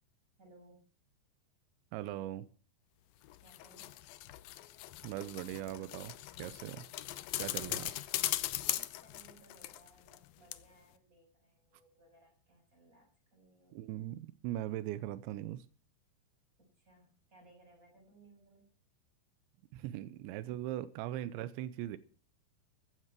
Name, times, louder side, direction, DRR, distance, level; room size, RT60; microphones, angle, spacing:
voice 1, 0.4-0.8 3.4-4.0 8.7-13.9 16.6-18.7, right 2 dB, 15° right, 7.5 m, -63 dB
voice 2, 1.9-2.4 5.0-6.9 7.4-7.9 13.7-15.7 19.7-22.0, right 13 dB, 90° right, 3.1 m, -40 dB
sound 1, 3.2-10.2 10.5-10.6, left 15 dB, 90° left, 2.0 m, -39 dB
15.0 x 9.7 x 6.0 m
omnidirectional pair, 5.1 m